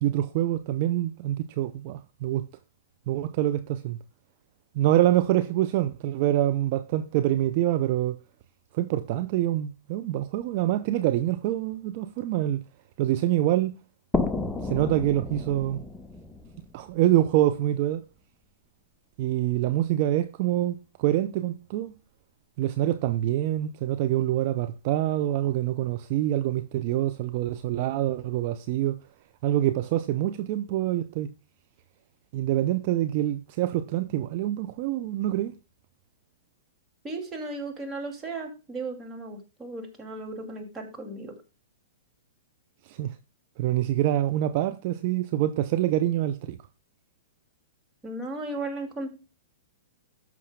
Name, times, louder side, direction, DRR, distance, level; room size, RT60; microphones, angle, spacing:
voice 1, 0.0-2.4 3.1-4.0 4.7-8.2 8.7-12.6 13.0-13.8 14.6-15.8 16.7-18.0 19.2-21.9 22.6-29.0 29.4-31.3 32.3-35.5 42.9-43.2 43.6-46.6, right 13 dB, 45° right, 0.6 m, -25 dB
sound 1, 14.1-17.6, left 3 dB, 5° left, 0.8 m, -32 dB
voice 2, 37.0-41.3 48.0-49.1, right 2 dB, 15° right, 2.4 m, -35 dB
14.5 x 6.1 x 2.2 m
hypercardioid pair, 125°, 0 cm